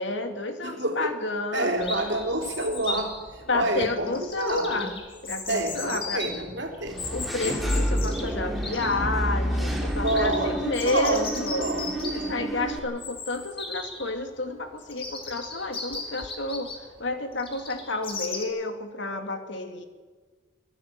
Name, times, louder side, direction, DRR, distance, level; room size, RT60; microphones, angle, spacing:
voice 1, 0.0-1.9 3.5-4.9 5.2-6.2 7.1-11.7 12.3-16.7 17.0-19.8, left 2 dB, 65° left, 6 dB, 2.4 m, -30 dB
voice 2, 0.6-1.1 1.5-4.9 5.5-7.1 10.0-12.5, right 2 dB, 65° right, 4 dB, 3.6 m, -29 dB
Chirp tweet, 1.8-18.4, left 3 dB, 30° left, 3.2 m, -38 dB
Engine / Mechanisms, 6.9-12.8, equal, ahead, 3.0 m, -29 dB
24.0 x 15.5 x 7.6 m, 1.4 s
head